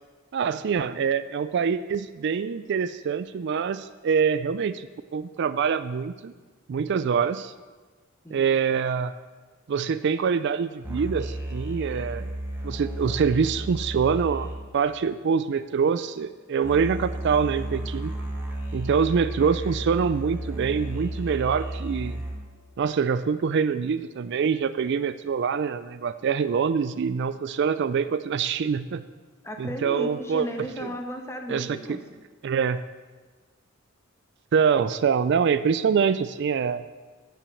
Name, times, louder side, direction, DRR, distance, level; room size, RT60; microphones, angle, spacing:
voice 1, 0.3-4.9 5.1-6.3 6.7-7.5 8.3-9.1 9.7-12.3 12.6-14.5 14.7-18.1 18.7-22.2 22.8-29.0 29.6-30.5 31.5-31.8 32.4-32.8 34.5-36.8, right 6 dB, 55° right, 13 dB, 0.4 m, -25 dB
voice 2, 8.2-8.6 29.4-32.0, equal, 15° left, 3 dB, 1.3 m, -35 dB
sound 1, 10.8-15.8 16.6-22.6, right 1 dB, 10° right, 1.7 m, -33 dB
13.5 x 6.0 x 6.9 m, 1.4 s
head